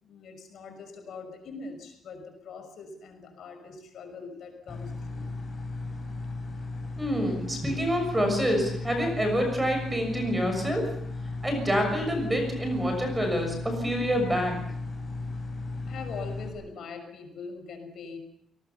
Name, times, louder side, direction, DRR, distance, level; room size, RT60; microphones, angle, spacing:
voice 1, 0.0-5.3 15.9-18.2, left 4 dB, 55° left, 5 dB, 6.2 m, -42 dB
sound 1, 4.7-16.5, left 3 dB, 15° left, 7.5 m, -36 dB
voice 2, 7.0-10.9 11.4-14.6, equal, 10° right, 4 dB, 6.6 m, -27 dB
29.0 x 19.5 x 7.1 m, 0.70 s
cardioid pair, 165°, 0 cm